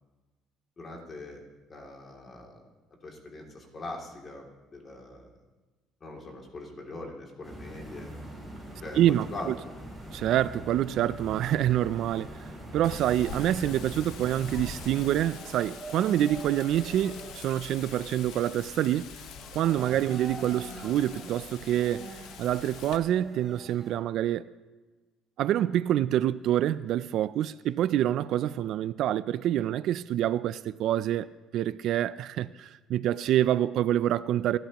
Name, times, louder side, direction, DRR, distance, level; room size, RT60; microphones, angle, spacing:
voice 1, 0.8-1.4 1.7-2.6 3.0-5.3 6.0-8.1 8.8-9.5 13.3-13.4 13.6-13.8 19.9-20.1, left 2 dB, 30° left, 2.7 m, -42 dB
sound 1, 7.4-15.2, right 1 dB, 5° left, 6.3 m, -42 dB
voice 2, 9.0-9.5 10.1-12.3 12.7-19.1 19.5-24.5 25.4-31.3 31.5-34.6, right 12 dB, 60° right, 0.4 m, -27 dB
sound 2, 11.3-23.9, right 2 dB, 15° right, 4.1 m, -47 dB
Wind, 12.8-23.0, left 7 dB, 70° left, 1.1 m, -45 dB
27.5 x 13.5 x 3.0 m
cardioid pair, 145°, 0 cm